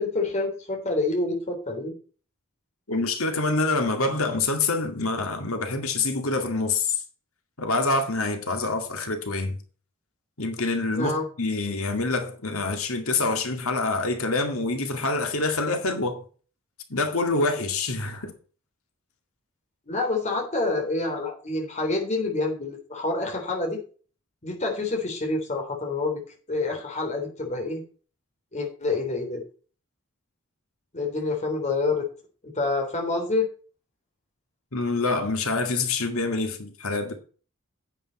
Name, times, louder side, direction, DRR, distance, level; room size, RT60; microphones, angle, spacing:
voice 1, 0.0-1.9 10.9-11.3 19.9-23.8 24.4-26.2 26.5-27.8 28.5-29.4 30.9-32.1 32.4-33.5, left 3 dB, 30° left, 3.5 m, -27 dB
voice 2, 2.9-7.0 7.6-9.6 10.4-16.2 16.9-18.3 34.7-37.2, left 3 dB, 65° left, 2.1 m, -26 dB
10.5 x 8.7 x 4.3 m
head